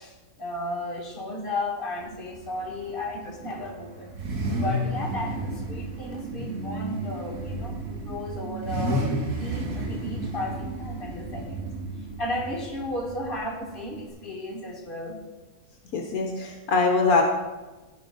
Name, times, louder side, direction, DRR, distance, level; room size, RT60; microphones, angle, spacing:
voice 1, 0.0-4.1 4.6-9.1 9.4-11.7 12.2-15.2, left 1 dB, 35° left, -1 dB, 2.0 m, -34 dB
Car / Idling / Accelerating revving vroom, 2.0-14.1, right 1 dB, 70° right, 1.8 m, -32 dB
voice 2, 15.9-17.2, left 4 dB, 75° left, 2 dB, 1.4 m, -22 dB
15.5 x 5.3 x 3.9 m, 1.2 s
omnidirectional pair, 1.6 m